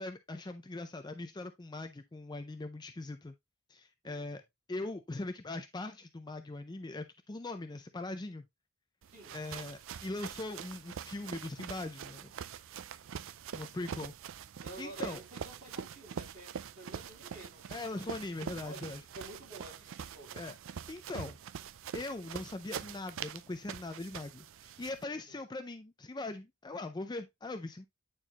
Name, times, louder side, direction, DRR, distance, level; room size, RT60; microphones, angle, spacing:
voice 1, 0.0-3.3 3.7-4.4 4.7-8.4 9.3-12.3 13.5-14.1 14.8-15.2 17.7-19.0 20.3-20.5 20.9-21.4 21.9-27.9, left 2 dB, 20° left, 0.5 m, -41 dB
voice 2, 4.0-4.4 9.1-9.7 13.6-14.1 14.6-20.5 25.1-25.4, right 2 dB, 35° right, 3.6 m, -51 dB
sound 1, 9.0-25.0, right 8 dB, 60° right, 0.4 m, -44 dB
9.0 x 4.4 x 2.9 m
head